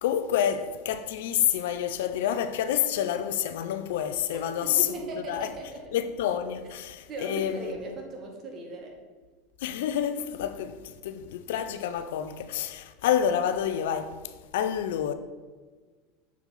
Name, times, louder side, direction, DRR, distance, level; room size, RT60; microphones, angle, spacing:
voice 1, 0.0-4.9 5.3-5.5 5.9-7.7 9.6-14.2 14.5-15.1, left 10 dB, 75° left, 0.5 m, -28 dB
voice 2, 4.3-5.9 7.1-8.9, right 2 dB, 40° right, 1.7 m, -38 dB
7.0 x 4.6 x 4.0 m
hypercardioid pair, 100°, 0 cm